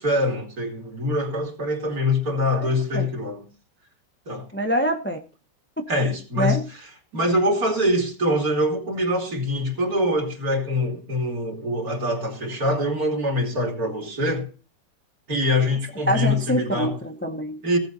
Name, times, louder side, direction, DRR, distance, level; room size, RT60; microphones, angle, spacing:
voice 1, 0.0-3.5 4.3-4.4 5.9-14.5 15.3-17.0 17.6-17.8, left 1 dB, 55° right, 3.5 m, -24 dB
voice 2, 4.5-5.2 5.8-5.9 6.4-6.7 16.1-17.6, equal, 10° left, 0.7 m, -25 dB
18.0 x 7.8 x 4.1 m
omnidirectional pair, 1.9 m